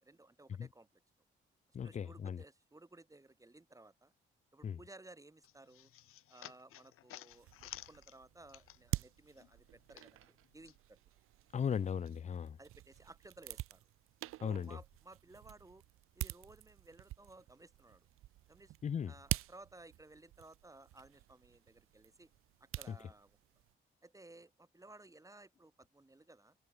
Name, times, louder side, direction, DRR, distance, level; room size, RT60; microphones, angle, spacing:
voice 1, 0.0-0.9 1.8-4.1 4.5-5.9 6.3-11.0 12.6-13.9 14.4-15.8 16.2-18.1 18.5-18.7 19.1-22.3 22.6-23.4 24.0-26.6, right 2 dB, 15° right, 2.2 m, -58 dB
voice 2, 1.7-2.4 4.6-4.8 11.5-12.6 14.4-14.8 18.8-19.1 22.9-23.0, left 7 dB, 35° left, 0.4 m, -37 dB
sound 1, 5.4-9.1 9.4-10.8, left 14 dB, 85° left, 1.3 m, -53 dB
sound 2, 7.3-23.7, right 16 dB, 90° right, 0.8 m, -47 dB
cardioid pair, 75°, 21 cm